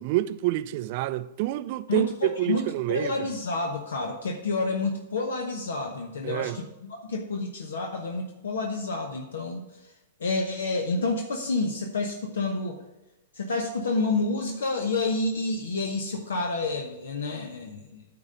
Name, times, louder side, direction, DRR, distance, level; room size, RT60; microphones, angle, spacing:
voice 1, 0.0-3.3 6.2-6.6, right 15 dB, 50° right, 0.4 m, -28 dB
voice 2, 1.9-9.6 10.2-12.8 13.3-18.0, left 3 dB, 75° left, 0.9 m, -29 dB
9.5 x 3.9 x 6.7 m
hypercardioid pair, 115°, 0 cm